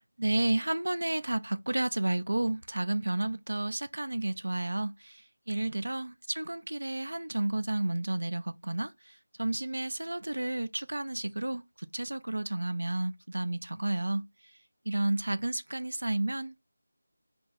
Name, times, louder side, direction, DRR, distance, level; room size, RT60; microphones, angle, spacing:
voice 1, 0.2-5.2 5.5-9.1 9.4-14.3 14.9-16.6, right 2 dB, 80° right, 0.4 m, -31 dB
2.7 x 2.3 x 4.0 m
figure-of-eight pair, 170°, 0 cm